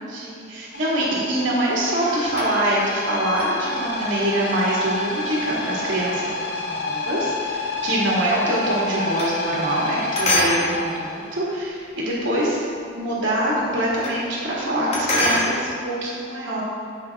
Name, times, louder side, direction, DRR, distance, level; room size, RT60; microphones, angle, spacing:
voice 1, 0.0-12.6 12.9-16.6, right 1 dB, 70° right, -6 dB, 1.8 m, -24 dB
sound 1, 0.7-11.5, left 2 dB, 60° left, 1.1 m, -29 dB
sound 2, 1.7-2.8 3.3-7.8 8.1-9.9 10.2-12.2 12.6-12.7 13.0-13.1 13.3-14.3 14.6-15.5, left 1 dB, 35° left, 1.6 m, -27 dB
15.0 x 5.2 x 3.5 m, 2.4 s
head